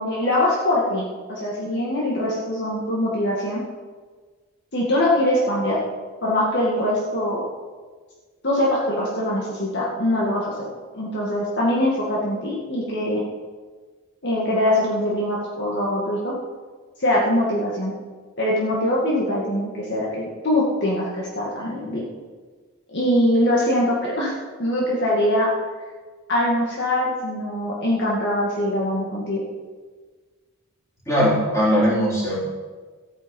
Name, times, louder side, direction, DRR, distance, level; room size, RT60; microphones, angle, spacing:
voice 1, 0.0-3.6 4.7-5.8 6.2-7.5 8.4-10.7 10.9-13.2 14.2-16.3 17.0-17.9 18.4-22.0 22.9-24.3 24.6-25.5 26.3-29.4, left 1 dB, 50° left, -4 dB, 2.1 m, -22 dB
voice 2, 31.1-32.4, equal, 15° left, -7 dB, 4.2 m, -19 dB
14.0 x 9.4 x 5.5 m, 1.4 s
head